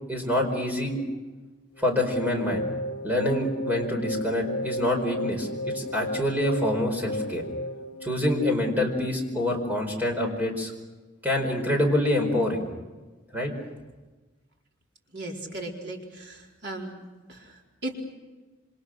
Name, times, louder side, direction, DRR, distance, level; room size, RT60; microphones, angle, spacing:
voice 1, 0.1-1.0 1.8-2.6 3.0-5.5 5.7-7.4 8.0-10.7 11.2-12.6 13.3-13.5, left 1 dB, 10° right, 2 dB, 4.9 m, -26 dB
sound 1, 1.7-9.0, left 1 dB, 60° left, 1.8 m, -34 dB
voice 2, 15.1-16.9 17.3-17.9, right 1 dB, 55° right, 0 dB, 4.4 m, -37 dB
28.0 x 26.0 x 6.6 m, 1.2 s
head